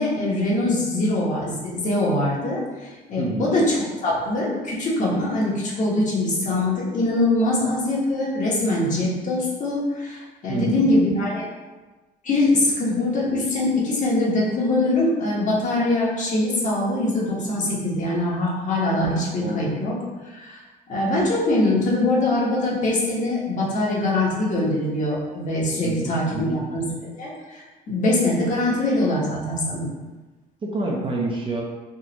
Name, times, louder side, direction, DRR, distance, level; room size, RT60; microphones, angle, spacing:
voice 1, 0.0-11.5 12.2-19.9 20.3-20.6 20.9-26.4 26.7-29.9, left 1 dB, 45° left, -5 dB, 1.1 m, -23 dB
voice 2, 3.2-3.5 10.5-10.9 19.4-19.7 25.8-26.6 30.6-31.6, right 2 dB, 30° right, -2 dB, 0.6 m, -27 dB
3.6 x 2.4 x 2.9 m, 1.2 s
cardioid pair, 110°, 17 cm